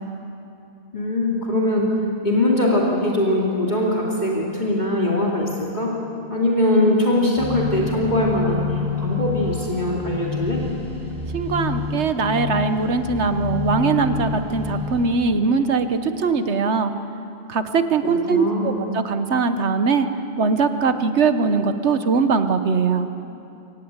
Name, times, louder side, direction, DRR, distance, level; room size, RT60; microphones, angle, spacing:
voice 1, 0.9-1.9 2.2-5.9 6.3-8.6 9.0-10.6 18.0-18.8, left 1 dB, 45° left, -3 dB, 2.7 m, -21 dB
sound 1, 7.4-15.2, left 4 dB, 5° left, 5.3 m, -28 dB
voice 2, 11.3-16.9 17.5-20.1 20.4-23.1, right 4 dB, 85° right, 9 dB, 1.4 m, -21 dB
25.0 x 18.5 x 8.1 m, 2.7 s
omnidirectional pair, 1.1 m